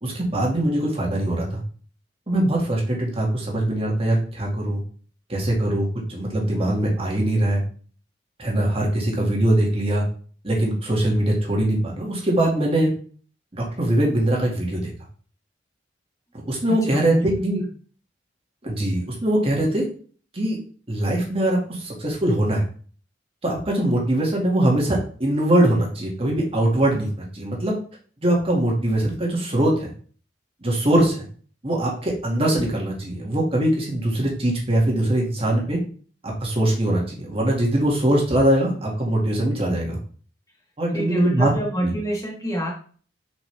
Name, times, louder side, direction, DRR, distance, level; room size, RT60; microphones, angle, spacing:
voice 1, 0.0-1.6 2.3-4.8 5.3-7.6 8.4-10.0 10.4-12.9 13.5-14.9 16.5-17.6 18.6-19.9 20.3-20.6 20.9-22.6 23.4-27.8 28.2-29.9 30.6-31.2 31.6-35.8 36.2-40.0 40.8-41.5 41.8-41.9, right 1 dB, 30° right, -2 dB, 2.1 m, -22 dB
voice 2, 16.9-17.6 40.9-42.7, right 1 dB, 20° left, 0 dB, 1.4 m, -28 dB
7.1 x 5.3 x 3.4 m, 0.43 s
head